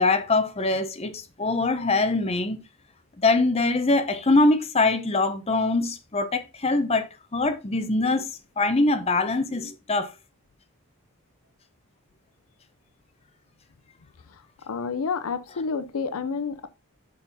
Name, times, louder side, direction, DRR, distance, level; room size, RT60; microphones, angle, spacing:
voice 1, 0.0-2.6 3.2-7.1 7.3-8.3 8.6-10.1, left 2 dB, 25° left, 0.7 m, -23 dB
voice 2, 14.7-16.7, left 5 dB, 75° left, 0.5 m, -29 dB
6.6 x 5.4 x 4.0 m
head